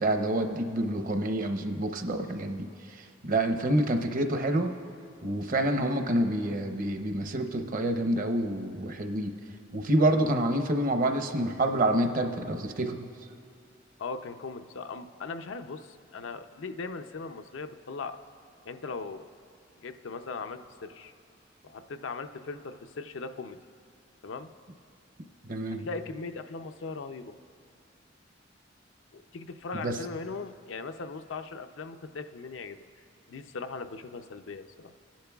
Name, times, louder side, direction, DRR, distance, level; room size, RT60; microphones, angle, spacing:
voice 1, 0.0-2.7 3.0-4.7 5.2-9.3 9.7-13.1 25.4-25.8 29.8-30.0, right 1 dB, 45° right, 6 dB, 0.7 m, -27 dB
voice 2, 14.0-18.2 18.6-19.3 19.8-21.1 21.6-23.6 24.2-24.5 25.7-27.4 29.1-32.8 33.3-34.9, left 4 dB, 85° left, 8 dB, 0.5 m, -39 dB
29.0 x 10.5 x 2.3 m, 2.4 s
head